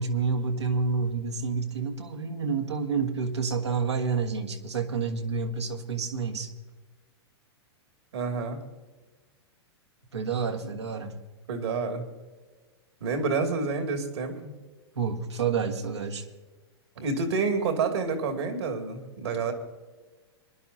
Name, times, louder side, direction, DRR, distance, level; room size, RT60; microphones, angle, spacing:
voice 1, 0.0-6.5 10.1-11.2 14.9-16.2, right 5 dB, 90° right, 2 dB, 1.8 m, -29 dB
voice 2, 8.1-8.6 11.5-12.0 13.0-14.5 17.0-19.5, right 4 dB, 75° right, 3 dB, 2.5 m, -28 dB
25.0 x 11.0 x 2.8 m, 1.3 s
hypercardioid pair, 105°, 14 cm